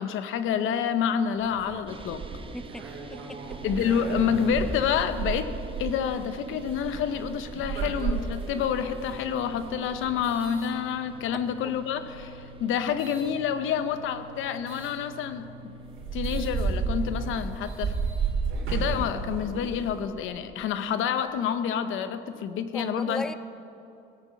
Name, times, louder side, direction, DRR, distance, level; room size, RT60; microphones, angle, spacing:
voice 1, 0.0-2.2 3.6-5.5 5.8-15.8 16.1-17.9 18.7-23.2, left 8 dB, 85° left, 11 dB, 0.8 m, -28 dB
sound 1, 1.4-11.4 12.0-13.3 14.7-14.9 15.5-15.6 15.8-20.0, right 5 dB, 85° right, 2.8 m, -33 dB
sound 2, 1.9-17.0, right 2 dB, 25° right, 0.9 m, -46 dB
voice 2, 2.5-2.9 3.1-3.6 22.7-23.3, left 2 dB, 5° left, 13 dB, 0.4 m, -36 dB
17.0 x 8.1 x 6.1 m, 2.8 s
cardioid pair, 90°, 20 cm